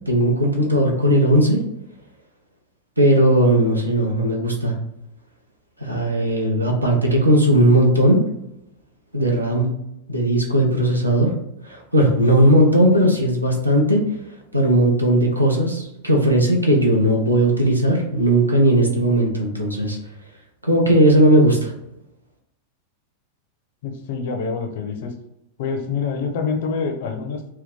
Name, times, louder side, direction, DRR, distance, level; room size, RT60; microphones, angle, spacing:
voice 1, 0.1-1.6 3.0-4.7 5.8-8.2 9.1-9.7 10.1-11.3 11.6-14.0 14.5-20.0 20.6-21.7, right 1 dB, 85° right, 0 dB, 0.6 m, -17 dB
voice 2, 23.8-25.1 25.6-27.5, left 5 dB, 55° left, 5 dB, 0.5 m, -26 dB
2.7 x 2.2 x 3.6 m, 0.85 s
figure-of-eight pair, 90°, 0 cm